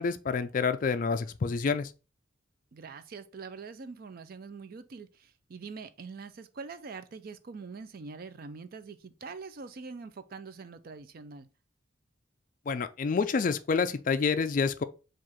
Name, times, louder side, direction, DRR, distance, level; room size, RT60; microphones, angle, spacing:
voice 1, 0.0-1.9 12.7-14.8, left 5 dB, 40° left, 0.3 m, -28 dB
voice 2, 2.7-11.5, right 4 dB, 45° right, 0.4 m, -44 dB
4.7 x 2.5 x 4.1 m
head